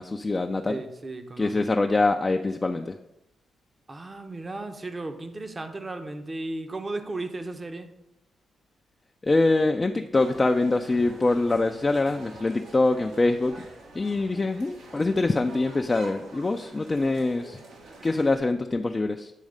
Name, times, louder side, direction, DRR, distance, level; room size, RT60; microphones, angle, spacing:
voice 1, 0.0-0.8 1.4-2.9 9.2-13.6 13.9-17.6 18.0-19.3, left 2 dB, 30° left, 5 dB, 0.4 m, -24 dB
voice 2, 0.7-1.6 3.9-7.9, right 2 dB, 30° right, 7 dB, 0.8 m, -35 dB
sound 1, 10.2-18.4, right 2 dB, 85° right, 1.3 m, -47 dB
8.4 x 3.1 x 5.1 m, 0.86 s
cardioid pair, 65°, 0 cm